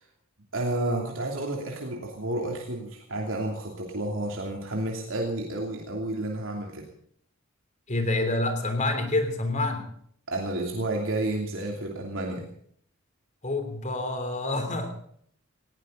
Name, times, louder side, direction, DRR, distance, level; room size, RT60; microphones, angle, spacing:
voice 1, 0.5-6.9 10.3-12.5, right 1 dB, 75° right, 0 dB, 3.0 m, -31 dB
voice 2, 7.9-9.9 13.4-14.9, left 2 dB, 35° left, 6 dB, 3.4 m, -27 dB
19.5 x 17.0 x 4.0 m, 0.64 s
head